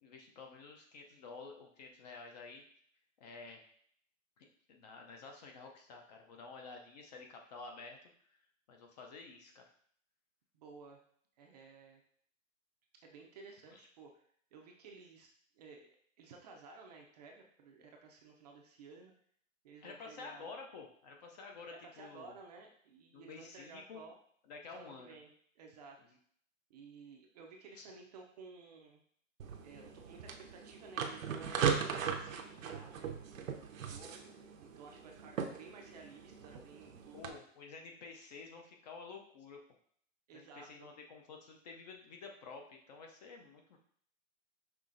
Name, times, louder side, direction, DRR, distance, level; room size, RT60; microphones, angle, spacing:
voice 1, 0.0-2.6 3.2-3.6 4.4-8.0 8.7-9.6 13.7-13.8 19.8-22.3 23.1-24.0 24.5-25.1 27.7-27.9 37.1-39.6 40.3-43.8, left 4 dB, 35° left, 2 dB, 0.5 m, -51 dB
voice 2, 10.5-11.0 11.4-12.0 13.0-14.2 14.5-15.3 15.5-19.1 19.6-20.5 21.7-24.1 24.7-25.3 25.6-26.2 26.7-29.0 29.6-37.3 40.3-40.9, right 4 dB, 35° right, 1 dB, 0.4 m, -55 dB
sound 1, 29.4-37.3, right 7 dB, 85° right, 0.7 m, -39 dB
5.7 x 3.0 x 2.5 m, 0.62 s
hypercardioid pair, 140°, 39 cm